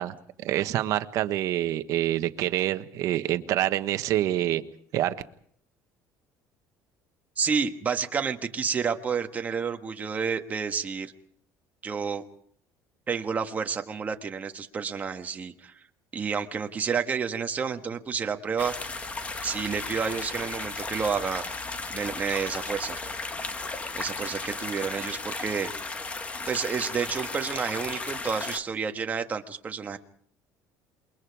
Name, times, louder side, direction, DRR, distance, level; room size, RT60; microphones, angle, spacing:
voice 1, 0.0-4.6 4.9-5.1, right 13 dB, 60° right, 10 dB, 1.3 m, -26 dB
voice 2, 7.4-11.1 11.8-12.2 13.1-15.8 16.1-19.0 19.4-21.4 21.9-23.0 23.9-25.7 26.5-30.0, right 6 dB, 25° right, 5 dB, 1.5 m, -30 dB
sound 1, 18.6-28.6, left 3 dB, 20° left, 1.4 m, -35 dB
28.0 x 22.5 x 4.9 m, 0.63 s
cardioid pair, 140°, 6 cm